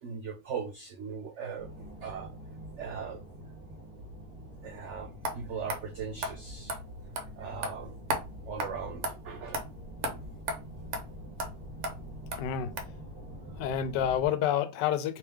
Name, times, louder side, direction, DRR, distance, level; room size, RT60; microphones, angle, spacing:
voice 1, 0.0-2.3 2.8-3.2 4.6-6.8 7.4-8.0 8.5-9.6 10.1-10.2, right 6 dB, 90° right, 0.6 m, -39 dB
sound 1, 1.6-14.3, equal, 25° right, 0.9 m, -45 dB
sound 2, 5.2-5.4 5.7-5.8 6.2-6.3 6.7-6.8 7.2-7.3 7.6-7.7 8.1-8.2 8.6-8.7 9.0-9.1 9.5-9.6 10.0-10.1 10.5-10.6 10.9-11.0 11.4-11.5 11.8-11.9 12.3-12.4 12.8-12.9, right 2 dB, 55° right, 0.9 m, -32 dB
voice 2, 12.4-12.7 13.6-15.2, left 10 dB, 85° left, 1.2 m, -28 dB
3.3 x 2.9 x 3.4 m
omnidirectional pair, 1.8 m